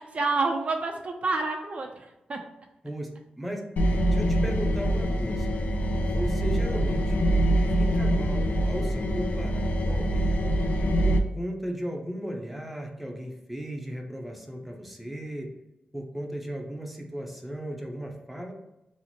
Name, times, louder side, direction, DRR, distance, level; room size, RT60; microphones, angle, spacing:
voice 1, 0.0-2.4, right 3 dB, 50° right, 3 dB, 0.4 m, -28 dB
sound 1, 3.8-11.2, equal, 65° left, 0.4 m, -24 dB
voice 2, 4.1-5.5 6.1-7.2 7.7-10.3 11.0-15.5 15.9-18.5, equal, ahead, 1 dB, 0.6 m, -36 dB
2.9 x 2.0 x 4.0 m, 0.92 s
cardioid pair, 85°, 3 cm